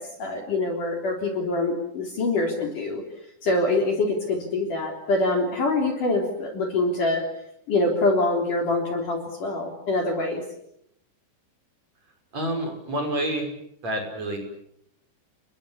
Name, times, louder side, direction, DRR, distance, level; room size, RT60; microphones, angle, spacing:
voice 1, 0.0-3.0 3.4-7.2 7.7-10.4, left 2 dB, 45° left, 3 dB, 4.6 m, -25 dB
voice 2, 12.3-13.5 13.8-14.4, right 1 dB, 35° right, 4 dB, 6.8 m, -28 dB
30.0 x 23.0 x 8.5 m, 0.76 s
omnidirectional pair, 5.8 m